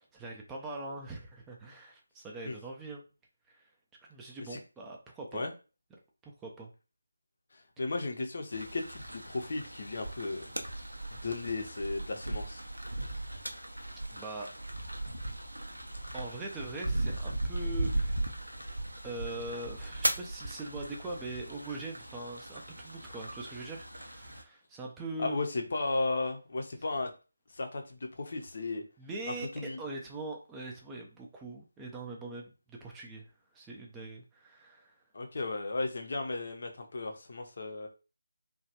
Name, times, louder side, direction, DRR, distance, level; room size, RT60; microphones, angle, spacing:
voice 1, 0.0-3.0 3.5-3.7 4.1-5.4 6.2-6.7 14.1-14.5 16.1-18.3 19.0-25.4 29.0-35.0, right 2 dB, 10° right, -1 dB, 0.4 m, -42 dB
voice 2, 7.5-10.5 11.1-12.6 25.2-27.1 27.5-28.8 29.5-29.8 35.1-37.9, left 3 dB, 45° left, 4 dB, 0.6 m, -35 dB
sound 1, 8.5-24.4, right 1 dB, 80° right, 0.5 m, -37 dB
3.1 x 2.2 x 2.8 m, 0.32 s
figure-of-eight pair, 155°, 0 cm